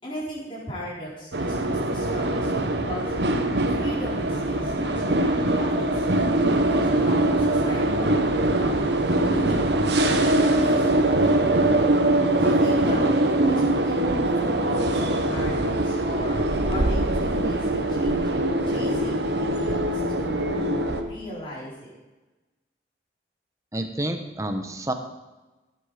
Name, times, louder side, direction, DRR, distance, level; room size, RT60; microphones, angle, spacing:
voice 1, 0.0-3.1 3.7-6.1 6.7-9.8 10.4-11.5 12.4-16.4 16.7-20.4 21.0-21.9, equal, 30° left, -6 dB, 4.7 m, -37 dB
sound 1, 1.3-21.0, right 1 dB, 70° right, 1.3 m, -22 dB
voice 2, 23.7-24.9, right 1 dB, 15° right, 6 dB, 1.1 m, -29 dB
17.5 x 8.0 x 5.1 m, 1.1 s
head